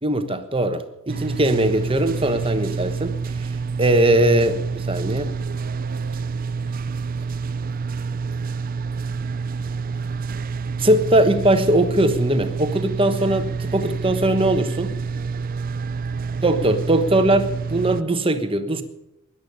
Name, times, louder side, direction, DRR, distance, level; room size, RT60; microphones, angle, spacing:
voice 1, 0.0-3.1 3.8-5.3 10.8-14.9 16.4-18.8, right 1 dB, 25° right, 9 dB, 1.2 m, -20 dB
sound 1, 1.1-18.0, right 5 dB, 40° right, 0.5 m, -28 dB
17.5 x 11.5 x 6.7 m, 0.92 s
head